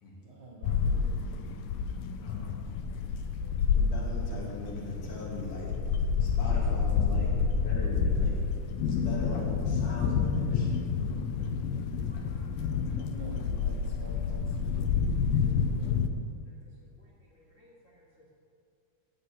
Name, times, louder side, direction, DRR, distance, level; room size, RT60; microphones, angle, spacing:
voice 1, 0.2-1.5 13.0-16.0, right 2 dB, 80° right, -3 dB, 1.2 m, -48 dB
sound 1, 0.6-16.1, left 6 dB, 85° left, 2.3 m, -29 dB
voice 2, 2.2-3.1 3.7-5.7 6.2-7.3 7.6-8.5 8.8-11.3, left 1 dB, 65° left, -4 dB, 3.7 m, -40 dB
voice 3, 8.8-9.2 11.0-11.4 11.7-11.8 12.1-13.2 13.8-13.9 15.3-15.4 16.4-18.3, left 1 dB, 30° left, -6 dB, 1.2 m, -63 dB
14.0 x 5.0 x 8.3 m, 2.3 s
omnidirectional pair, 4.0 m